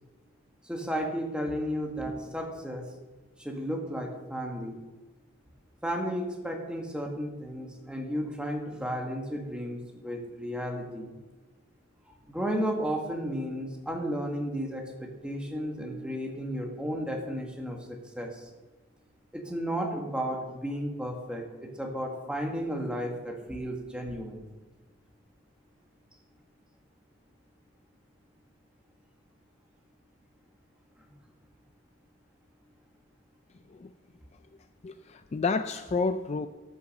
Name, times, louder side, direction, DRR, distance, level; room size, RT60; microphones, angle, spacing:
voice 1, 0.6-2.9 3.4-4.8 5.8-11.1 12.1-18.5 19.3-24.4, equal, 5° right, 1 dB, 1.5 m, -33 dB
voice 2, 34.8-36.5, left 4 dB, 35° left, 9 dB, 0.4 m, -30 dB
14.0 x 6.3 x 6.5 m, 1.2 s
head